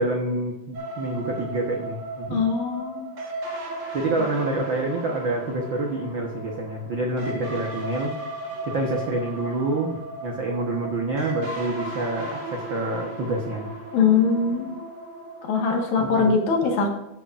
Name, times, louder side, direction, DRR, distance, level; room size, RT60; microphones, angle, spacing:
voice 1, 0.0-2.4 3.9-8.1 8.6-13.7 16.0-16.4, right 2 dB, 80° right, 1 dB, 1.0 m, -27 dB
sound 1, 0.7-16.3, right 1 dB, 45° right, 2.7 m, -36 dB
voice 2, 2.3-3.1 13.9-14.8 15.4-16.9, left 5 dB, 60° left, 1 dB, 2.7 m, -22 dB
13.0 x 9.5 x 2.5 m, 0.91 s
omnidirectional pair, 4.0 m